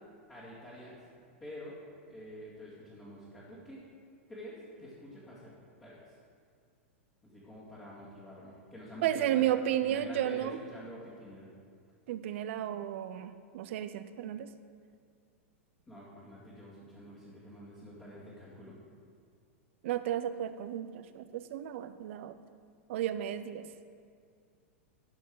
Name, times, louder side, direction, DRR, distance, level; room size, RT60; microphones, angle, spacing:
voice 1, 0.3-1.0 1.4-1.8 2.1-3.8 4.3-5.5 5.8-6.0 7.2-11.5 15.9-18.8, equal, 15° left, -11 dB, 2.2 m, -48 dB
voice 2, 9.0-10.6 12.1-14.5 19.8-22.3 22.9-23.7, right 11 dB, 65° right, 12 dB, 0.5 m, -33 dB
12.0 x 5.3 x 3.8 m, 2.2 s
hypercardioid pair, 120°, 7 cm